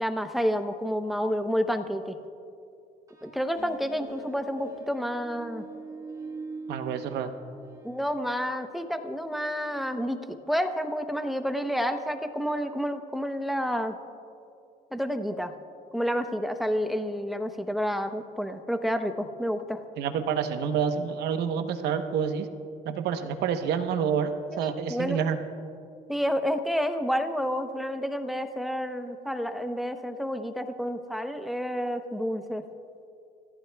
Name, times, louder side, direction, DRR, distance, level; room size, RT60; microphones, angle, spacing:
voice 1, 0.0-2.2 3.2-5.7 7.8-14.0 14.9-15.5 15.9-19.8 24.5-25.2 26.1-32.6, equal, ahead, 7 dB, 0.8 m, -29 dB
sound 1, 3.1-8.3, right 3 dB, 20° right, 1.9 m, -43 dB
voice 2, 6.7-7.3 20.0-22.5 22.8-25.4, right 7 dB, 80° right, 7 dB, 1.0 m, -28 dB
27.0 x 15.0 x 2.3 m, 2.5 s
cardioid pair, 110°, 17 cm